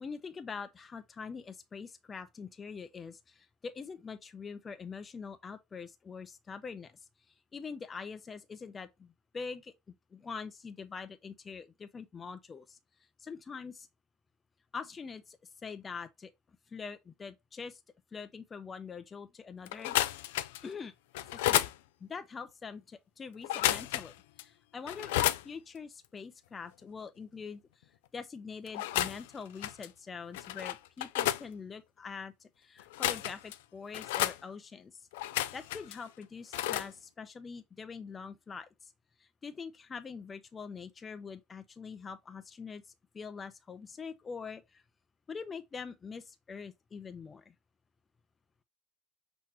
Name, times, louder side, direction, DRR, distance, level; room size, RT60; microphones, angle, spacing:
voice 1, 0.0-7.0 7.5-9.7 10.1-12.8 13.2-13.9 14.7-16.3 16.7-17.8 18.1-19.9 20.6-20.9 21.2-21.7 22.0-24.1 24.4-27.6 28.1-35.1 35.5-38.9 39.2-42.8 43.1-44.8 45.3-47.5, left 5 dB, 25° left, 0.6 m, -44 dB
sound 1, 19.7-20.7 21.1-21.7 23.4-24.1 24.4-24.5 24.9-25.4 28.7-29.3 29.6-29.9 30.3-31.4 32.8-33.5 33.9-34.4 35.1-35.9 36.5-36.9, left 14 dB, 90° left, 0.3 m, -31 dB
5.7 x 3.0 x 2.8 m
supercardioid pair, 105°, 0 cm